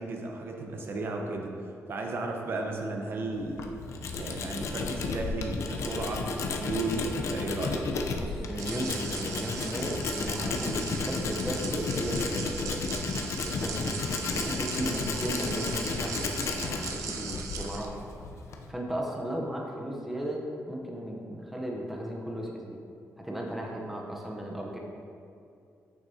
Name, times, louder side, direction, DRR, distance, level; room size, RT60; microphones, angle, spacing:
voice 1, 0.0-1.5 1.9-3.8 4.2-7.9 14.8-15.0, right 2 dB, 45° right, 1 dB, 0.9 m, -34 dB
Tools, 3.3-18.7, left 4 dB, 65° left, 0.6 m, -33 dB
voice 2, 8.2-12.8 13.4-18.0 18.7-22.8 23.2-24.8, equal, 5° right, -1 dB, 0.8 m, -35 dB
sound 1, 8.6-17.8, right 6 dB, 80° right, 0.6 m, -39 dB
8.6 x 6.5 x 2.8 m, 2.4 s
wide cardioid pair, 150°, 5 cm